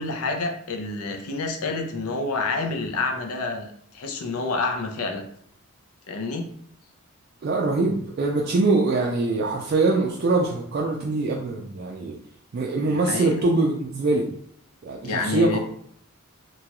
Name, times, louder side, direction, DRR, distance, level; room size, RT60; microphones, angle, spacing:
voice 1, 0.0-5.2 6.1-6.5 12.9-13.4 15.0-15.6, left 3 dB, 85° left, 4 dB, 0.5 m, -28 dB
voice 2, 7.4-12.1 12.5-14.3 14.8-15.6, right 3 dB, 45° right, -1 dB, 0.3 m, -23 dB
2.9 x 2.3 x 2.9 m, 0.65 s
head